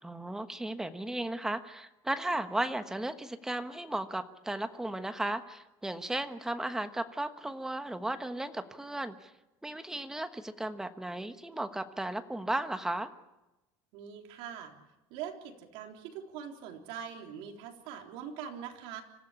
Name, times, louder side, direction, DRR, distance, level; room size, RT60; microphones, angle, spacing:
voice 1, 0.0-9.3 9.6-13.1, right 1 dB, 5° right, 8 dB, 1.2 m, -35 dB
voice 2, 13.9-14.7 15.1-19.0, right 8 dB, 75° right, 2 dB, 3.8 m, -42 dB
25.5 x 15.0 x 9.9 m, 1.0 s
cardioid pair, 155°, 10 cm